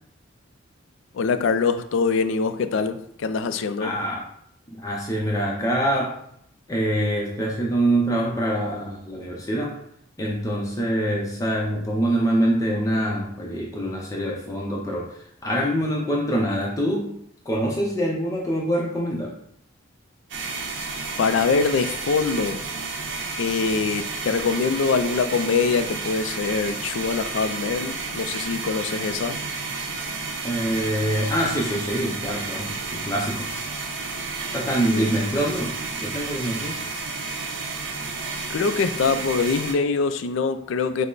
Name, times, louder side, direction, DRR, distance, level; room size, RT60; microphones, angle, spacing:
voice 1, 1.1-3.9 21.2-22.6 23.4-29.4 34.9-35.1 38.5-41.1, left 4 dB, 70° left, 10 dB, 0.3 m, -24 dB
voice 2, 3.8-4.2 4.7-6.2 6.7-9.8 10.2-17.1 17.5-19.3 30.4-33.5 34.5-36.9, right 1 dB, 15° left, -3 dB, 0.5 m, -25 dB
sound 1, 20.3-39.7, right 4 dB, 65° right, 0.6 m, -31 dB
5.3 x 2.0 x 3.8 m, 0.69 s
head